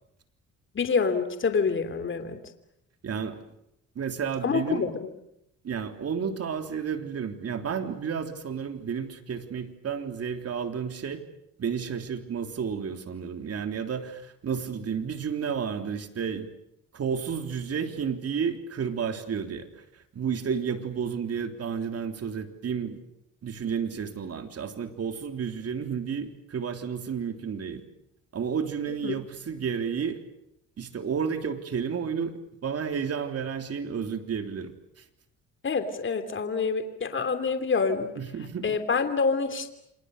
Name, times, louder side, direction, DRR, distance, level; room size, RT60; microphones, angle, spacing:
voice 1, 0.7-2.4 4.4-5.1 29.0-29.2 35.6-38.1 38.6-39.7, left 5 dB, 40° left, 9 dB, 3.0 m, -27 dB
voice 2, 3.0-3.4 3.9-4.9 5.6-11.2 11.6-16.5 16.9-23.0 23.4-27.8 28.3-30.2 30.8-35.0 38.2-38.7, right 7 dB, 55° right, 7 dB, 3.4 m, -31 dB
28.5 x 27.0 x 6.7 m, 0.78 s
cardioid pair, 90°, 30 cm